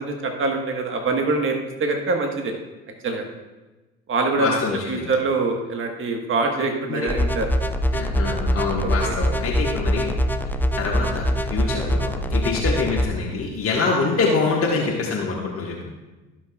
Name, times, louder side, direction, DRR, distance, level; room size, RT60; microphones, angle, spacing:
voice 1, 0.0-2.5 3.0-3.2 4.1-4.6 4.9-7.5 9.1-9.2, right 3 dB, 40° right, 3 dB, 1.4 m, -24 dB
voice 2, 4.4-5.1 6.9-7.1 7.9-10.2 10.8-15.7, left 4 dB, 45° left, -3 dB, 1.6 m, -25 dB
sound 1, 7.1-13.1, equal, 5° left, 0.6 m, -23 dB
15.5 x 6.1 x 2.4 m, 1.1 s
hypercardioid pair, 65°, 32 cm